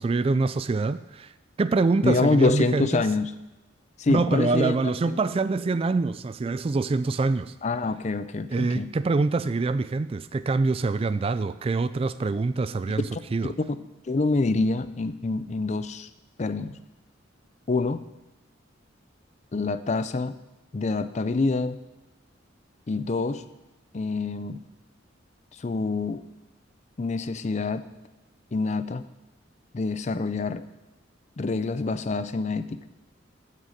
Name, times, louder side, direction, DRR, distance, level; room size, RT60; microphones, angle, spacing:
voice 1, 0.0-1.3 1.6-3.0 4.1-7.5 8.5-13.1 13.3-13.5, right 3 dB, 30° right, 14 dB, 0.3 m, -25 dB
voice 2, 2.0-3.3 4.0-4.8 5.1-5.2 7.6-8.9 13.1-13.2 14.1-16.1 16.4-16.7 17.7-18.0 19.5-20.4 20.7-21.8 22.9-23.4 23.9-24.6 25.6-26.2 27.0-27.9 28.5-29.0 29.7-30.6 31.4-32.8, left 3 dB, 35° left, 12 dB, 0.5 m, -26 dB
14.5 x 6.6 x 5.1 m, 1.0 s
head